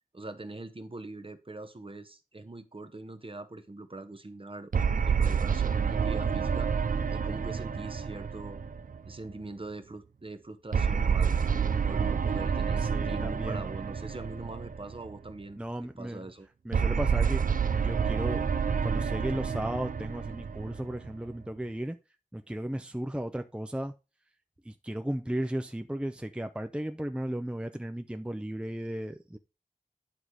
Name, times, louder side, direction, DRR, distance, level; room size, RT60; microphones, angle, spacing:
voice 1, 0.1-8.6 9.0-11.4 11.8-15.6 16.0-16.5, right 2 dB, 40° right, 1.0 m, -42 dB
sound 1, 4.7-9.3 10.7-15.1 16.7-21.3, right 6 dB, 75° right, 0.6 m, -28 dB
voice 2, 11.5-11.8 12.8-13.7 15.6-16.3 16.6-17.4 17.7-18.4 18.8-22.0 22.3-23.9 24.6-29.4, right 1 dB, 5° right, 0.6 m, -35 dB
10.0 x 4.0 x 4.7 m
wide cardioid pair, 55°, 14 cm